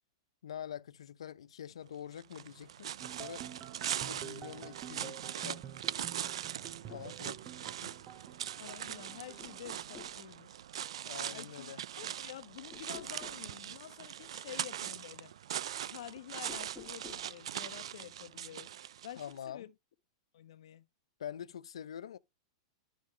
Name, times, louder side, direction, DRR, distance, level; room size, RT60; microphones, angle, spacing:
voice 1, 0.4-3.5 4.0-5.6 6.9-7.4 7.8-8.0 11.1-11.9 19.2-19.7 21.2-22.2, left 9 dB, 90° left, 0.6 m, -45 dB
sound 1, 2.2-19.4, right 10 dB, 80° right, 0.4 m, -41 dB
sound 2, 3.0-10.1, right 10 dB, 25° right, 0.8 m, -49 dB
sound 3, 6.7-7.1 8.7-9.0 9.4-10.2 12.7-13.5 16.4-17.3, left 5 dB, 15° left, 1.5 m, -52 dB
voice 2, 8.6-10.5 11.3-15.3 15.9-18.7 19.0-19.7 20.3-20.8, left 12 dB, 70° left, 1.1 m, -49 dB
11.5 x 5.2 x 3.2 m
hypercardioid pair, 145°, 3 cm